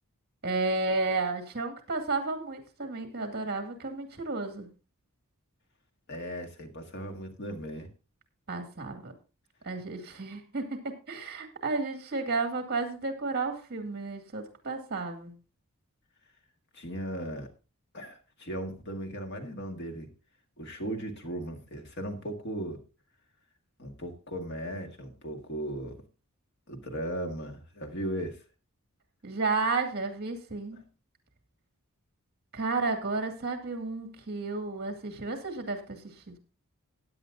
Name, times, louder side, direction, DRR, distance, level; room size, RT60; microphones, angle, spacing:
voice 1, 0.4-4.7 8.5-9.1 9.6-10.6 11.1-15.3 29.2-30.8 32.5-36.0 36.3-36.4, right 3 dB, 50° right, 2.3 m, -32 dB
voice 2, 6.1-7.9 16.7-17.5 17.9-20.1 20.6-22.8 23.8-26.0 26.7-28.4, right 1 dB, 55° left, 1.8 m, -37 dB
16.0 x 9.8 x 2.6 m
head